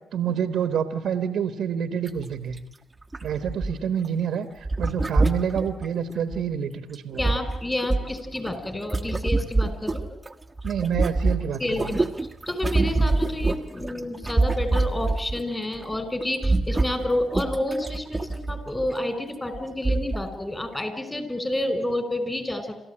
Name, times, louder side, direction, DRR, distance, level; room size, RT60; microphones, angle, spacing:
voice 1, 0.1-2.6 3.2-7.3 10.6-11.9, right 8 dB, 75° right, 10 dB, 1.5 m, -28 dB
sound 1, 2.1-2.2 2.5-2.6 3.1-4.1 4.6-6.4 6.9-10.3 10.6-15.4 15.7-16.0 16.2-18.9 19.5-19.6 19.8-20.3 20.7-20.8, right 2 dB, 20° right, 1.4 m, -26 dB
voice 2, 7.2-10.1 11.6-12.1 12.5-22.9, left 1 dB, 20° left, 10 dB, 5.2 m, -29 dB
28.5 x 14.0 x 9.0 m, 0.92 s
cardioid pair, 65°, 0 cm